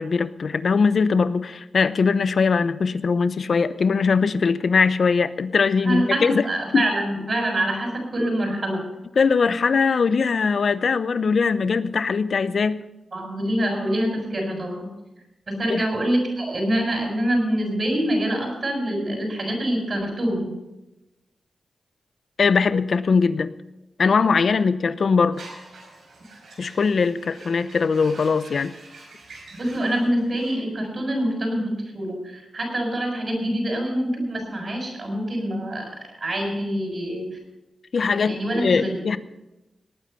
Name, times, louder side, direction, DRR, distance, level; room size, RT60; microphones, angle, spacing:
voice 1, 0.0-6.4 6.7-6.9 9.2-12.8 15.7-15.8 22.4-23.5 24.0-25.4 26.6-28.7 37.9-39.2, left 5 dB, 65° left, 15 dB, 0.7 m, -21 dB
voice 2, 5.8-8.8 13.1-14.9 15.5-20.5 29.6-35.8 36.2-37.3 38.2-39.0, right 1 dB, 50° right, 2 dB, 7.0 m, -25 dB
sound 1, 25.3-30.5, right 3 dB, 80° right, 5.1 m, -46 dB
19.0 x 9.4 x 5.7 m, 0.98 s
cardioid pair, 50°, 0 cm